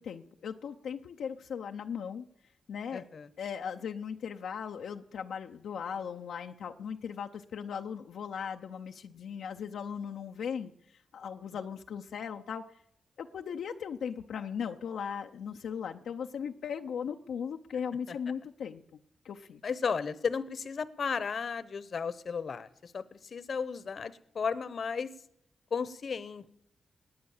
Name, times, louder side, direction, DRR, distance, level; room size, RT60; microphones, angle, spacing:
voice 1, 0.0-2.2 2.7-3.1 3.4-12.6 13.2-18.8 19.2-19.6, left 7 dB, 85° left, 3 dB, 0.6 m, -38 dB
voice 2, 2.9-3.3 19.6-25.1 25.7-26.5, left 5 dB, 60° left, 17 dB, 0.9 m, -34 dB
19.0 x 9.5 x 7.2 m, 0.72 s
cardioid pair, 80°, 0 cm